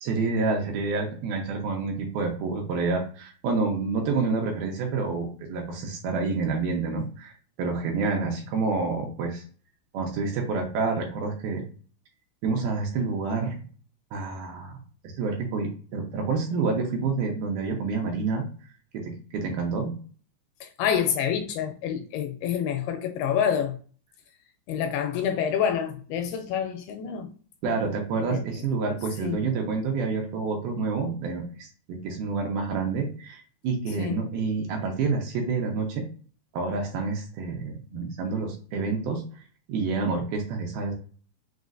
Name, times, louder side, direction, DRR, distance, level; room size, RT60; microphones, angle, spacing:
voice 1, 0.0-9.4 9.9-11.6 12.4-13.6 14.1-14.8 15.0-18.4 18.9-19.9 27.6-36.0 36.5-39.4 39.7-40.9, right 4 dB, 75° right, 2.4 m, -28 dB
voice 2, 20.6-23.8 24.7-27.3 28.3-28.4 29.2-29.4 34.0-34.2, left 8 dB, 85° left, 2.3 m, -27 dB
6.2 x 2.4 x 2.4 m
omnidirectional pair, 4.8 m